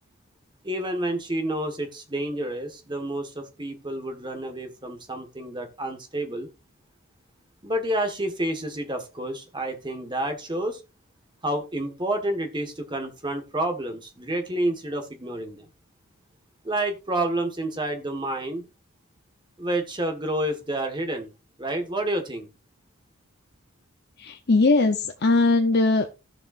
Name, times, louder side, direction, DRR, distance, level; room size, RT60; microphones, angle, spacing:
voice 1, 0.6-6.5 7.6-10.8 11.4-15.7 16.6-18.7 19.6-21.3 21.6-22.5, right 1 dB, 20° right, 1.5 m, -29 dB
voice 2, 24.2-26.1, left 3 dB, 50° left, 0.8 m, -20 dB
16.0 x 6.9 x 2.6 m
head